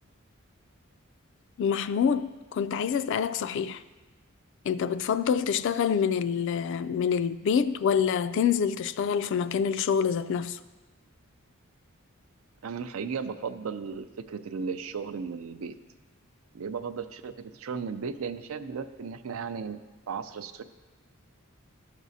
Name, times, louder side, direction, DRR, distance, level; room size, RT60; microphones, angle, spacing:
voice 1, 1.6-3.8 4.7-10.6, left 7 dB, 60° left, 0.3 m, -26 dB
voice 2, 12.6-15.8 16.5-20.6, right 5 dB, 80° right, 0.4 m, -35 dB
13.5 x 6.1 x 2.7 m
head